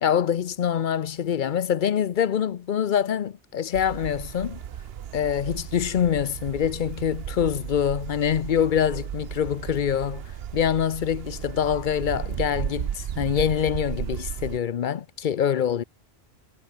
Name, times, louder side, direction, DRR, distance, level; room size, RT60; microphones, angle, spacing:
voice 1, 0.0-4.6 5.1-10.2 10.5-15.8, left 9 dB, 55° left, 0.7 m, -25 dB
sound 1, 3.7-14.6, right 9 dB, 70° right, 1.0 m, -35 dB
omnidirectional pair, 1.1 m